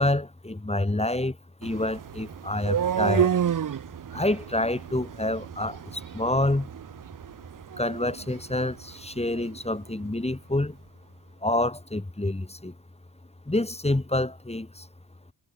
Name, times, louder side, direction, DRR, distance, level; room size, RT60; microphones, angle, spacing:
voice 1, 0.0-1.4 1.6-3.3 4.1-6.7 7.8-10.8 11.4-12.7 13.5-14.9, left 1 dB, 15° left, 1.9 m, -27 dB
sound 1, 1.6-9.6, right 9 dB, 45° right, 0.7 m, -31 dB
cardioid pair, 50°, 44 cm